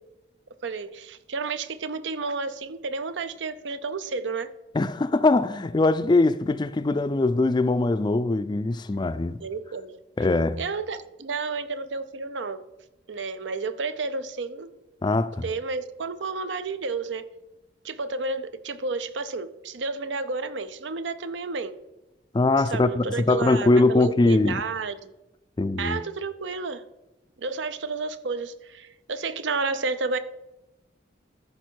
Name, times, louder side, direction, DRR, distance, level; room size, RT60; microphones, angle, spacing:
voice 1, 0.6-4.5 9.4-10.0 10.6-12.6 13.1-14.7 15.4-17.3 17.8-21.8 22.7-25.1 25.8-26.8 27.4-30.2, right 4 dB, 80° right, 0.6 m, -31 dB
voice 2, 4.7-9.4 10.2-10.6 15.0-15.5 22.3-24.6 25.6-26.0, left 2 dB, 25° left, 0.4 m, -22 dB
13.5 x 5.3 x 4.5 m
head